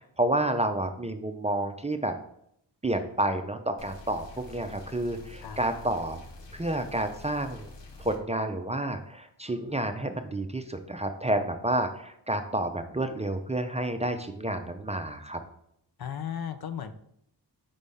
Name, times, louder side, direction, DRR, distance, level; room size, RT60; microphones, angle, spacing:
voice 1, 0.2-2.1 2.8-6.2 6.5-7.7 8.0-15.4, right 1 dB, 15° right, 7 dB, 0.5 m, -30 dB
sound 1, 3.8-8.2, left 3 dB, 80° left, 1.0 m, -47 dB
voice 2, 16.0-16.9, left 8 dB, 60° left, 10 dB, 0.6 m, -35 dB
5.3 x 3.4 x 5.4 m, 0.72 s
wide cardioid pair, 95°, 42 cm